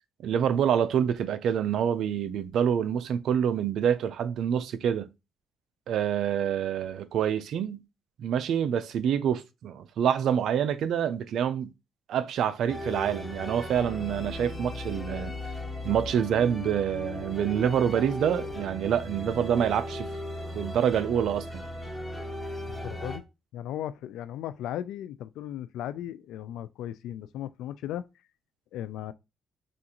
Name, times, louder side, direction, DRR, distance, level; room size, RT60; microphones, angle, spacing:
voice 1, 0.2-5.1 5.9-7.8 8.2-11.7 12.1-15.4 15.8-20.1 20.5-21.6, right 9 dB, 75° right, 0.5 m, -27 dB
sound 1, 12.7-23.2, left 1 dB, 5° left, 1.4 m, -37 dB
voice 2, 22.7-23.2 23.5-28.0 28.7-29.1, left 11 dB, 85° left, 0.3 m, -36 dB
6.2 x 2.5 x 2.9 m
cardioid pair, 90°, 0 cm